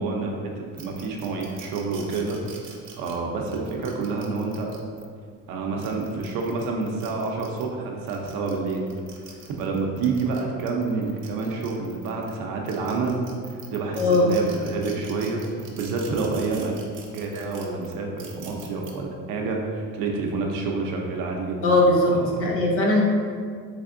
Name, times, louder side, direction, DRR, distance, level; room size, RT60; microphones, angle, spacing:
voice 1, 0.0-2.4 3.0-4.7 5.5-8.8 9.6-13.2 13.5-16.8 17.1-21.7 22.1-22.5, right 4 dB, 85° right, 0 dB, 0.6 m, -28 dB
sound 1, 0.8-5.1 5.6-7.7 8.1-12.3 12.7-18.9, right 6 dB, 40° right, 0.5 m, -45 dB
voice 2, 14.0-14.3 21.6-23.0, left 2 dB, 45° left, -1 dB, 0.6 m, -19 dB
3.5 x 3.4 x 2.5 m, 2.1 s
cardioid pair, 160°, 32 cm